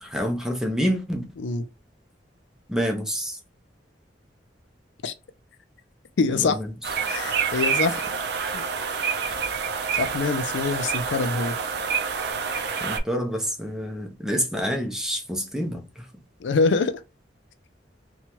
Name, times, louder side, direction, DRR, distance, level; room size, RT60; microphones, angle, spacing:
voice 1, 0.0-1.3 2.7-3.4 6.4-6.7 12.8-16.1, equal, 5° right, 0.6 m, -27 dB
voice 2, 6.2-6.6 7.1-8.1 8.5-8.6 9.9-11.6 16.4-17.0, left 4 dB, 75° left, 0.4 m, -25 dB
sound 1, 6.8-13.0, right 6 dB, 60° right, 0.5 m, -27 dB
2.8 x 2.3 x 2.9 m
head